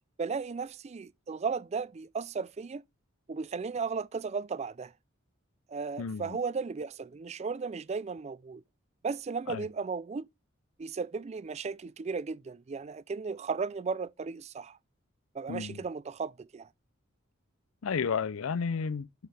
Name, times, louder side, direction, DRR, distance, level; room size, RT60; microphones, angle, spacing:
voice 1, 0.2-2.8 3.3-4.9 5.7-8.6 9.0-10.3 10.8-14.8 15.3-16.7, right 5 dB, 30° right, 0.3 m, -35 dB
voice 2, 6.0-6.4 9.5-9.7 15.5-15.8 17.8-19.1, left 6 dB, 85° left, 0.5 m, -32 dB
11.5 x 4.8 x 3.3 m
head